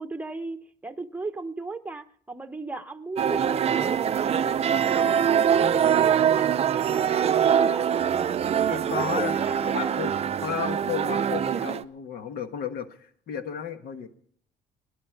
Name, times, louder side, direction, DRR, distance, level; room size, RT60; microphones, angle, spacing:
voice 1, 0.0-5.5 5.9-8.1 8.6-10.0, right 3 dB, 10° right, 7 dB, 1.0 m, -36 dB
sound 1, 3.2-11.8, right 8 dB, 40° right, 0.5 m, -23 dB
voice 2, 8.7-9.4 9.6-10.1 10.4-14.1, left 7 dB, 65° left, 8 dB, 1.6 m, -33 dB
18.0 x 11.0 x 5.9 m, 0.62 s
cardioid pair, 110°, 17 cm